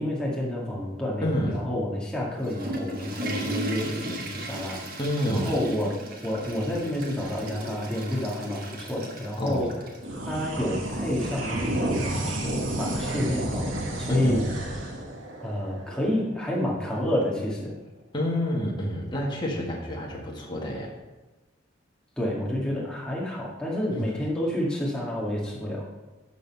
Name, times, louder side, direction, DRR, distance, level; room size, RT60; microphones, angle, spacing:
voice 1, 0.0-5.0 5.3-6.0 6.2-9.7 10.2-13.7 14.0-14.4 15.4-17.7 22.2-25.8, left 1 dB, 5° left, -5 dB, 1.9 m, -29 dB
voice 2, 1.2-1.6 5.0-5.5 9.4-9.7 14.1-14.4 18.1-20.9 23.9-24.1, equal, 25° left, -2 dB, 1.5 m, -28 dB
Water / Toilet flush, 2.2-10.0, right 1 dB, 50° right, 1.3 m, -36 dB
sound 1, 10.0-16.7, right 1 dB, 85° right, 1.4 m, -31 dB
11.5 x 4.1 x 5.4 m, 1.2 s
head